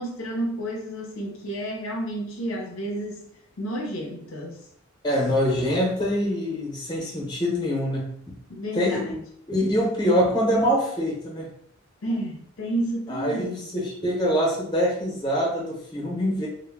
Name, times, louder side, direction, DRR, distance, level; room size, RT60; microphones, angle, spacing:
voice 1, 0.0-3.3 3.6-4.6 8.5-9.2 12.0-13.7 16.4-16.5, right 1 dB, 70° left, 0 dB, 0.6 m, -31 dB
voice 2, 5.0-8.1 8.7-9.1 9.5-11.5 13.1-16.5, equal, 20° left, -4 dB, 0.7 m, -24 dB
2.1 x 2.1 x 3.3 m, 0.66 s
head